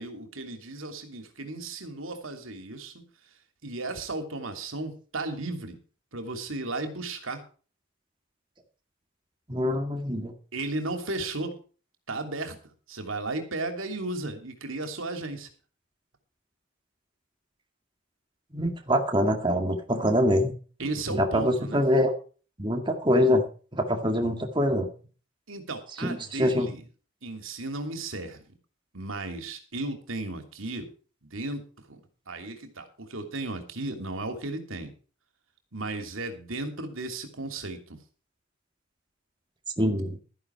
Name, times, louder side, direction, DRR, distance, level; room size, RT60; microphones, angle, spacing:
voice 1, 0.0-3.1 3.6-5.8 6.1-7.4 10.5-11.5 12.1-12.6 12.9-15.5 20.8-21.8 25.5-26.8 27.2-28.4 28.9-30.9 31.2-32.0 32.3-34.9 35.7-38.0, right 2 dB, 80° right, 6 dB, 2.9 m, -35 dB
voice 2, 9.5-10.3 18.5-20.5 21.1-22.1 22.6-23.4 23.7-24.9 26.0-26.7 39.8-40.2, equal, 25° right, 4 dB, 1.9 m, -24 dB
13.5 x 11.0 x 4.6 m, 0.38 s
head